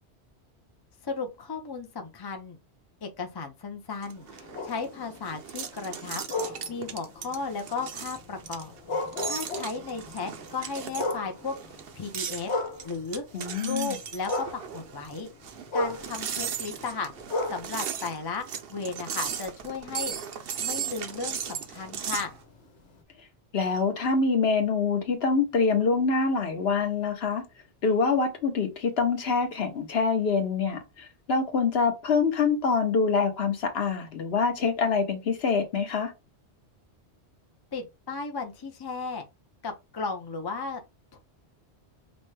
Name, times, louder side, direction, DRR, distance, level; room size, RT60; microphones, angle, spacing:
voice 1, 1.0-2.6 3.0-8.7 9.2-11.5 11.9-12.5 12.8-13.2 13.6-15.3 15.7-17.1 17.5-20.1 20.6-22.4 37.7-39.3 39.6-40.8 41.1-41.2, left 4 dB, 30° left, 0.5 m, -35 dB
sound 1, 4.0-22.3, right 8 dB, 60° right, 0.8 m, -37 dB
sound 2, 4.2-13.4 13.7-19.0 19.5-23.0, left 2 dB, 90° left, 1.4 m, -37 dB
voice 2, 13.3-14.0 23.5-27.4 27.8-36.1, left 4 dB, 65° left, 1.1 m, -25 dB
5.2 x 2.2 x 3.2 m
omnidirectional pair, 1.2 m